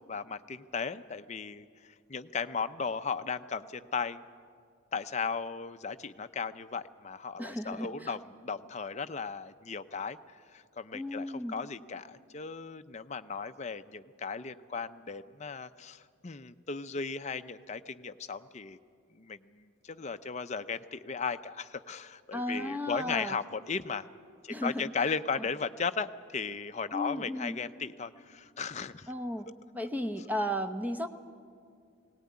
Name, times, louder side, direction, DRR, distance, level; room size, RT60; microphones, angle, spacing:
voice 1, 0.0-4.2 4.9-18.8 19.1-24.1 24.4-29.1, left 5 dB, 35° left, 10 dB, 0.5 m, -36 dB
voice 2, 7.4-8.1 10.9-11.5 22.3-23.4 24.5-24.9 25.3-25.4 26.9-27.6 29.1-29.4 29.7-31.1, equal, 10° right, 7 dB, 0.8 m, -34 dB
19.0 x 18.0 x 9.5 m, 2.2 s
head